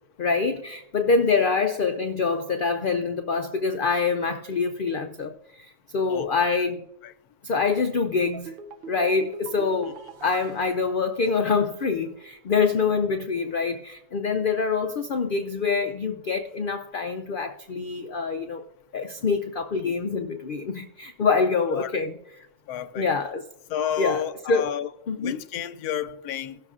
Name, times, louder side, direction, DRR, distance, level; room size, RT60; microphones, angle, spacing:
voice 1, 0.2-6.8 7.4-8.5 8.9-9.9 10.2-18.6 18.9-22.5 22.9-23.4 24.0-24.7 25.1-25.4, left 4 dB, 75° left, 0.5 m, -25 dB
voice 2, 6.1-6.7 7.0-7.1 19.8-19.9 21.7-21.9 22.7-23.1 23.7-24.9 25.2-26.6, left 9 dB, 90° left, 1.1 m, -31 dB
sound 1, 8.3-11.8 12.0-12.1, right 4 dB, 60° right, 0.6 m, -43 dB
18.5 x 6.7 x 2.4 m
omnidirectional pair, 1.6 m